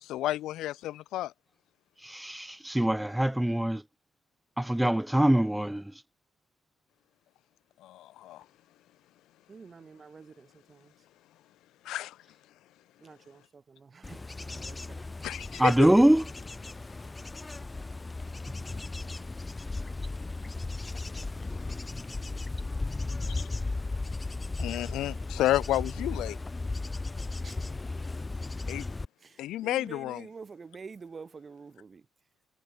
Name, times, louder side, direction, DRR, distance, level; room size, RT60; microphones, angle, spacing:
voice 1, 0.0-1.3 7.8-8.4 11.8-12.2 15.2-15.7 23.4-23.5 24.6-26.4 28.7-28.8 29.4-30.2, left 14 dB, 85° left, 2.8 m, -31 dB
voice 2, 2.1-3.8 4.6-5.8 15.6-16.3, right 1 dB, 5° right, 0.6 m, -23 dB
voice 3, 9.5-10.9 13.0-15.3 15.8-15.9 27.4-27.9 29.2-32.1, right 5 dB, 35° right, 7.8 m, -48 dB
Bird / Insect / Wind, 14.0-29.1, left 3 dB, 20° left, 1.1 m, -36 dB
cardioid pair, 90°, 0 cm